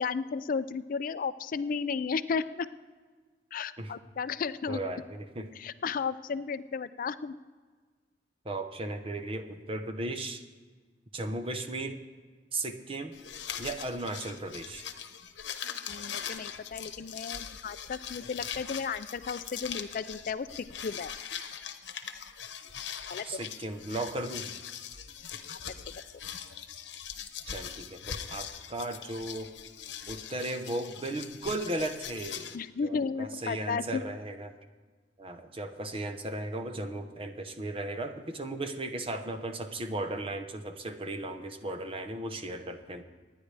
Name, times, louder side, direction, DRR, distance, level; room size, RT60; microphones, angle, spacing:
voice 1, 0.0-2.7 3.5-4.8 5.6-7.3 15.9-20.5 20.8-21.1 23.1-23.4 25.5-25.6 32.5-34.0, left 5 dB, 50° left, 13 dB, 0.4 m, -34 dB
voice 2, 4.7-5.5 8.4-10.4 11.1-12.0 12.5-13.2 13.6-14.8 23.2-24.5 27.5-29.5 30.1-32.6 32.8-34.5 35.2-43.0, right 2 dB, 30° right, 7 dB, 1.0 m, -36 dB
sound 1, 13.1-32.6, left 8 dB, 75° left, 1.0 m, -41 dB
26.0 x 10.0 x 3.4 m, 1.5 s
head